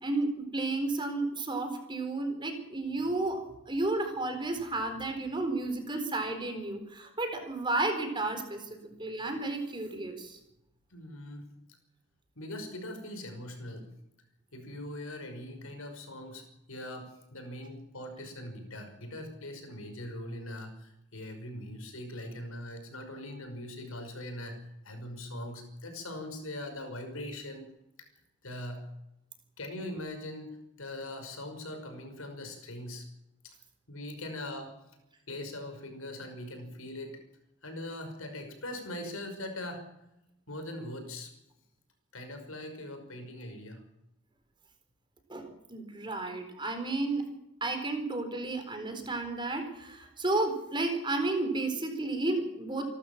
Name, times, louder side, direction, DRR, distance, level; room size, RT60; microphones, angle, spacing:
voice 1, 0.0-3.4 3.7-10.4 45.3-47.3 47.6-52.9, right 2 dB, 20° right, 5 dB, 4.2 m, -32 dB
voice 2, 10.9-11.5 12.4-13.9 14.5-24.6 24.8-27.7 28.0-28.1 28.4-28.9 29.6-33.1 33.4-33.5 33.9-34.8 35.3-37.2 37.6-39.8 40.5-41.3 42.1-43.8, left 1 dB, 80° left, 6 dB, 5.8 m, -41 dB
28.5 x 13.0 x 7.4 m, 0.87 s
head